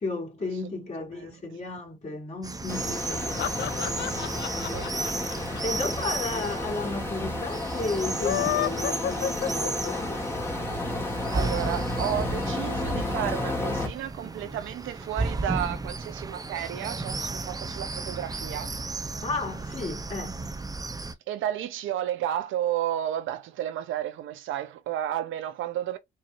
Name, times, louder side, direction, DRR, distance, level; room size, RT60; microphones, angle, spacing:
voice 1, 0.0-3.7 5.6-10.2 19.2-20.4, left 3 dB, 35° left, 2.5 m, -33 dB
voice 2, 1.0-1.3 4.0-4.9 11.3-18.7 21.3-26.0, right 11 dB, 85° right, 0.7 m, -32 dB
sound 1, 2.4-21.1, right 3 dB, 20° right, 0.6 m, -34 dB
sound 2, 2.7-13.9, left 2 dB, 10° left, 1.5 m, -32 dB
sound 3, 3.0-6.4 6.7-6.8 7.0-7.1 8.0-10.2, left 11 dB, 60° left, 0.5 m, -30 dB
4.7 x 2.8 x 2.5 m
cardioid pair, 90°, 20 cm